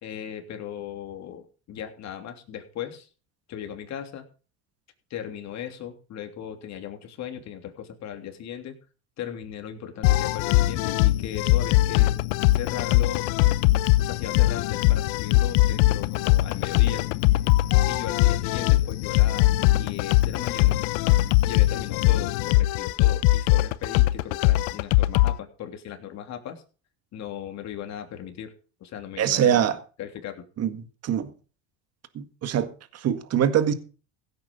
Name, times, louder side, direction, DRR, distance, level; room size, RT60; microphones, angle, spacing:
voice 1, 0.0-3.1 3.5-4.2 5.1-8.7 9.2-12.1 12.5-13.3 14.0-17.1 17.9-20.8 21.4-26.6 27.1-28.5 28.8-30.4, left 9 dB, 55° left, 3.2 m, -37 dB
sound 1, 10.0-25.4, left 17 dB, 75° left, 0.8 m, -21 dB
voice 2, 29.2-29.8 30.6-31.3 32.1-33.7, right 9 dB, 45° right, 1.8 m, -24 dB
16.5 x 8.9 x 5.3 m
supercardioid pair, 95°, 33 cm